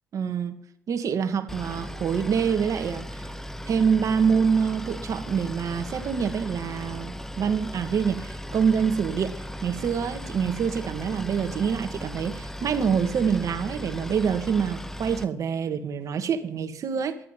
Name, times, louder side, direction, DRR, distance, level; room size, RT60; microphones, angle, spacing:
voice 1, 0.1-0.5 0.9-3.2 3.6-9.3 9.6-17.2, right 6 dB, 60° right, 1.5 m, -26 dB
Boat Water vehicle, 1.5-15.2, equal, 5° left, 0.7 m, -37 dB
11.5 x 9.1 x 9.2 m
hypercardioid pair, 45°, 6 cm